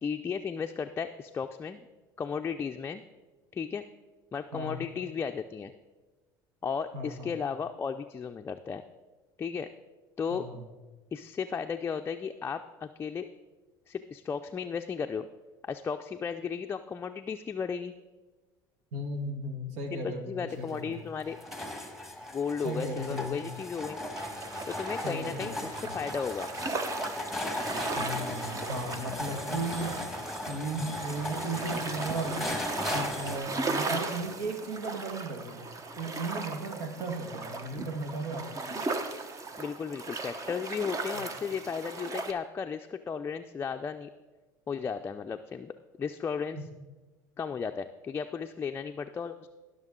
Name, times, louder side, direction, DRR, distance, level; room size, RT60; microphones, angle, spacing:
voice 1, 0.0-1.8 2.2-3.0 3.5-3.8 4.3-5.7 6.6-8.8 9.4-9.7 10.2-10.4 11.1-13.3 13.9-15.3 15.6-17.9 19.9-21.4 22.3-24.0 24.7-26.5 39.6-44.1 44.7-46.6 47.4-49.5, left 6 dB, 25° left, 6 dB, 0.4 m, -35 dB
voice 2, 4.5-4.9 6.9-7.3 10.3-10.6 18.9-21.0 22.6-23.5 25.0-25.9 27.9-30.0 30.5-32.6 32.9-38.5 41.1-41.3 46.5-46.6, right 2 dB, 80° right, 5 dB, 1.5 m, -36 dB
sound 1, 20.5-33.4, left 1 dB, ahead, 1.5 m, -37 dB
sound 2, 24.2-42.3, right 3 dB, 35° right, 1.0 m, -37 dB
18.0 x 6.2 x 3.7 m, 1.2 s
supercardioid pair, 90°, 10 cm